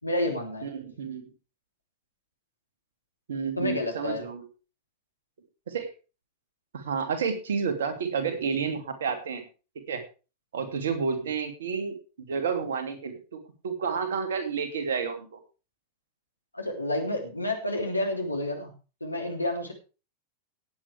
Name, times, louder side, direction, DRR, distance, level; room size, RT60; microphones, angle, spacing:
voice 1, 0.0-0.7 3.6-4.3 16.5-18.7 19.0-19.7, left 1 dB, 85° left, 2 dB, 3.3 m, -29 dB
voice 2, 0.6-1.3 3.3-4.4 5.7-5.9 6.7-9.4 9.9-10.0 10.5-12.0 12.3-15.4, right 6 dB, 60° right, 6 dB, 2.8 m, -30 dB
17.5 x 8.8 x 3.5 m, 0.33 s
figure-of-eight pair, 90°, 0 cm